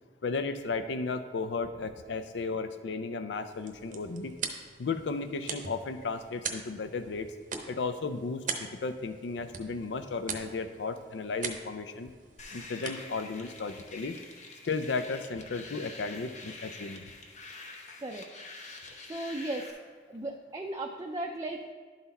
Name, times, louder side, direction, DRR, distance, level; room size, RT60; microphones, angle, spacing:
voice 1, 0.2-4.3 4.8-7.3 7.7-12.1 12.5-14.2 14.6-17.1, left 4 dB, 80° left, 10 dB, 0.5 m, -34 dB
sound 1, 3.3-14.6, right 6 dB, 45° right, 0.7 m, -42 dB
sound 2, 12.4-19.7, left 3 dB, 40° left, 0.9 m, -46 dB
voice 2, 19.1-19.7 20.1-21.7, right 1 dB, 20° right, 1 dB, 0.4 m, -36 dB
11.5 x 4.0 x 4.1 m, 1.5 s
head